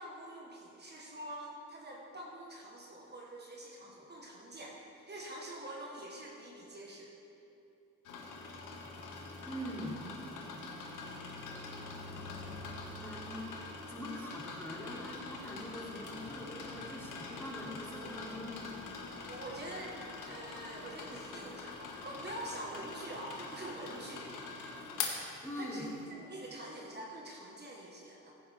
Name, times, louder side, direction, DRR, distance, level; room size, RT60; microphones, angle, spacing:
voice 1, 0.0-7.1 19.3-20.0 20.3-24.3 25.6-28.3, right 1 dB, 35° right, -2 dB, 1.6 m, -45 dB
sound 1, 8.0-26.0, left 4 dB, 85° left, 1.7 m, -44 dB
voice 2, 9.4-10.0 12.8-13.5 13.9-19.0 25.4-25.9, left 1 dB, 10° left, -5 dB, 2.9 m, -43 dB
16.0 x 9.8 x 3.6 m, 2.8 s
cardioid pair, 90°, 30 cm